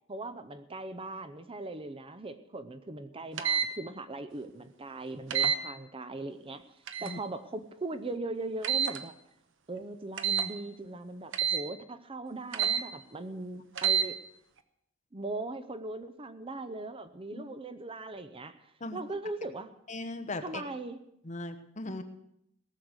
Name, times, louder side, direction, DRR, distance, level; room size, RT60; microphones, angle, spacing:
voice 1, 0.1-6.6 7.0-9.1 9.7-14.2 15.1-19.7 20.4-21.0, right 2 dB, 25° right, 11 dB, 0.7 m, -39 dB
sound 1, 3.4-3.7 5.3-5.6 6.9-7.2 8.6-9.0 10.2-10.5 11.3-11.6 12.5-12.8 13.8-14.1, right 7 dB, 65° right, 1.0 m, -27 dB
voice 2, 19.9-20.6 21.2-22.0, left 2 dB, 35° left, 8 dB, 1.1 m, -38 dB
18.0 x 6.6 x 8.0 m, 0.77 s
head